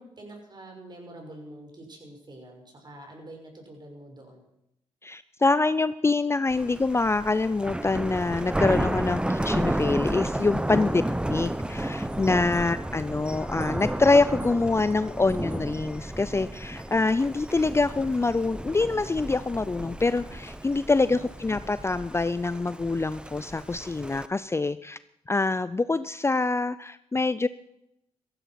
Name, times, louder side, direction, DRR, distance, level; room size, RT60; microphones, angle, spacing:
voice 1, 0.0-4.5 21.1-21.3, right 1 dB, 40° right, 2 dB, 6.1 m, -46 dB
voice 2, 5.0-11.0 11.3-25.0 25.3-27.5, left 3 dB, 20° left, 15 dB, 0.5 m, -25 dB
Thunder, 6.5-24.3, right 1 dB, 10° right, 0.9 m, -32 dB
15.5 x 15.0 x 5.9 m, 0.80 s
cardioid pair, 80°, 12 cm